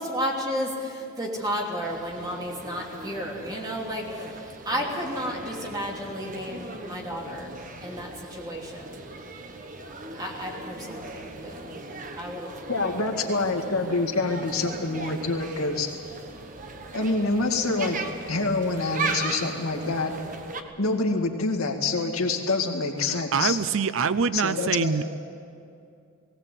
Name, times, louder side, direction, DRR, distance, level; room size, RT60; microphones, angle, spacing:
voice 1, 0.0-7.6 7.8-9.0 10.2-11.8 12.1-12.5 13.2-13.4, equal, 20° right, -2 dB, 3.1 m, -33 dB
sound 1, 1.8-20.6, right 3 dB, 40° right, 1.3 m, -38 dB
voice 2, 12.7-15.9 16.9-18.0 18.3-20.1 20.8-23.6 24.3-25.0, left 3 dB, 85° left, 2 dB, 2.1 m, -26 dB
voice 3, 23.0-25.0, right 5 dB, 65° right, 15 dB, 0.5 m, -25 dB
18.5 x 18.0 x 8.2 m, 2.5 s
head